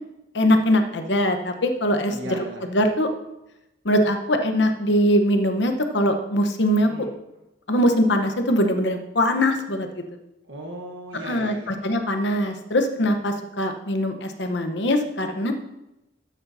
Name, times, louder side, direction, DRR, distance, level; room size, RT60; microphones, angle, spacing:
voice 1, 0.3-3.1 3.8-7.1 7.7-10.0 11.1-15.5, equal, 70° left, 6 dB, 1.0 m, -22 dB
voice 2, 2.1-2.6 6.8-7.1 10.5-11.7, right 1 dB, 90° right, -1 dB, 1.2 m, -36 dB
12.0 x 8.6 x 2.7 m, 0.94 s
head